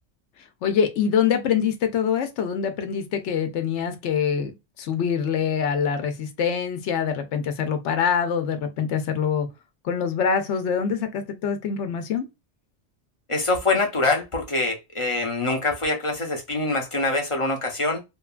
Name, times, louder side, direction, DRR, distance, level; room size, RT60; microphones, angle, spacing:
voice 1, 0.6-9.5 9.8-12.3, left 7 dB, 85° left, 0.9 m, -24 dB
voice 2, 13.3-18.0, left 2 dB, 35° left, 0.6 m, -24 dB
3.0 x 2.2 x 2.3 m
omnidirectional pair, 1.2 m